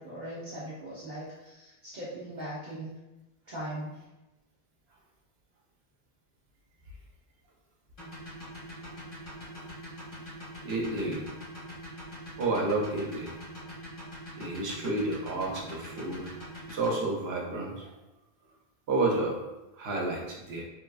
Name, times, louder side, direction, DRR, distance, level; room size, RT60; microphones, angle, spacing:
voice 1, 0.0-2.9 3.5-4.0, right 1 dB, 50° right, -8 dB, 0.7 m, -40 dB
sound 1, 8.0-16.9, left 1 dB, 80° left, 1.7 m, -43 dB
voice 2, 10.6-11.2 12.4-13.3 14.4-16.3 16.7-17.9 18.9-19.4 19.8-20.6, right 2 dB, 85° right, -1 dB, 0.9 m, -30 dB
3.2 x 2.2 x 2.3 m, 1.0 s
omnidirectional pair, 1.0 m